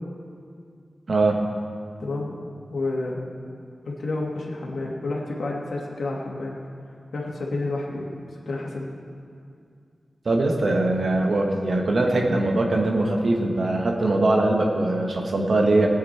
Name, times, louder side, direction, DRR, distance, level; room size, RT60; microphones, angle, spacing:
voice 1, 1.1-1.4 10.2-15.9, right 2 dB, 60° right, 1 dB, 1.6 m, -21 dB
voice 2, 2.0-2.4 2.7-3.2 3.8-6.5 7.1-8.1 8.5-8.9, left 2 dB, 85° left, -3 dB, 2.3 m, -29 dB
18.5 x 9.4 x 4.5 m, 2.3 s
wide cardioid pair, 95°, 0 cm